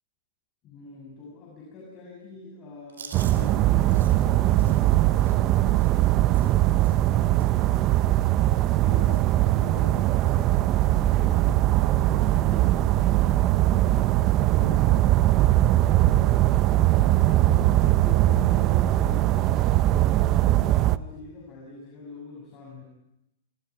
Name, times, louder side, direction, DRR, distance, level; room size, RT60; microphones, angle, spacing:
voice 1, 0.6-6.6 7.1-8.1 8.4-10.8 11.2-13.3 13.9-16.4 16.8-22.8, left 3 dB, 30° left, -2 dB, 6.7 m, -44 dB
Chewing mastication, 2.9-7.1 7.4-7.7 7.9-8.9 9.1-9.4 9.7-10.4 10.8-10.9 12.0-12.4, right 6 dB, 90° right, 4.3 m, -48 dB
sound 1, 3.1-21.0, right 15 dB, 35° right, 0.7 m, -21 dB
27.0 x 23.0 x 4.7 m, 0.83 s
hypercardioid pair, 130°, 0 cm